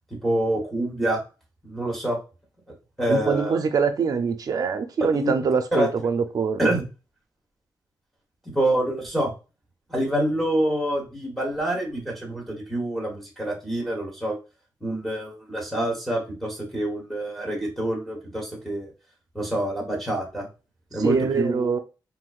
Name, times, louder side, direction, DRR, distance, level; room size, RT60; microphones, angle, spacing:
voice 1, 0.2-1.2 1.6-2.2 3.0-3.6 5.1-5.9 6.6-6.8 8.5-9.3 9.9-14.4 14.8-18.9 19.3-20.5 20.9-21.7, right 1 dB, 5° left, 1.1 m, -26 dB
voice 2, 3.1-6.7 20.9-21.8, right 5 dB, 55° right, 0.5 m, -24 dB
3.7 x 2.6 x 2.4 m
wide cardioid pair, 120°, 8 cm